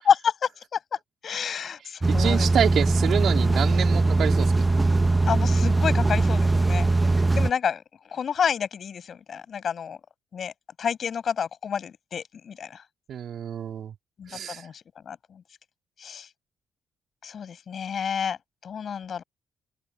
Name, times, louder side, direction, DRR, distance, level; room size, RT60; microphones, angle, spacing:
voice 1, 0.1-0.8 1.2-2.5 5.3-6.9 7.3-7.8 8.1-10.0 10.3-10.5 10.8-12.7 14.2-14.7 15.1-15.2 16.0-16.3 17.2-18.4 18.6-19.2, left 7 dB, 50° left, 7.2 m, -28 dB
sound 1, 2.0-7.5, right 2 dB, 15° right, 1.6 m, -21 dB
voice 2, 2.1-4.5 13.1-13.9 14.3-14.6, right 9 dB, 60° right, 3.2 m, -27 dB
open air
cardioid pair, 105°, 0 cm